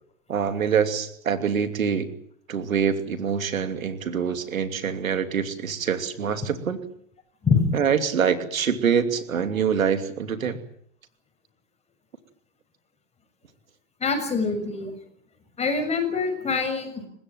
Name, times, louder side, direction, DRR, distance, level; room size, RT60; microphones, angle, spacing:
voice 1, 0.3-2.1 2.5-6.8 7.7-10.6, right 7 dB, 90° right, 9 dB, 2.9 m, -25 dB
voice 2, 14.0-14.9 15.6-17.0, left 5 dB, 15° left, 7 dB, 6.8 m, -24 dB
29.0 x 16.0 x 9.0 m, 0.67 s
hypercardioid pair, 125°, 40 cm